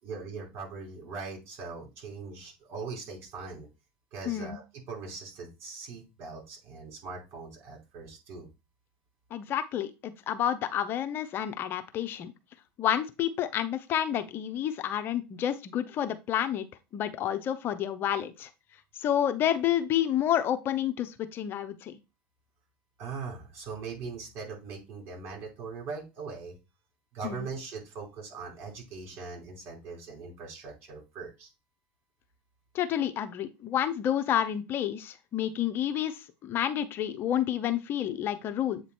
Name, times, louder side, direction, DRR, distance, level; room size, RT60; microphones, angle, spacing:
voice 1, 0.0-3.7 4.1-8.5 23.0-26.6 27.1-31.5, right 4 dB, 50° right, -1 dB, 4.4 m, -41 dB
voice 2, 4.3-4.6 9.3-12.3 12.8-16.7 16.9-18.5 19.0-21.9 27.2-27.5 32.7-38.8, left 10 dB, 45° left, 10 dB, 0.7 m, -29 dB
8.0 x 3.0 x 4.3 m, 0.26 s
hypercardioid pair, 100°, 5 cm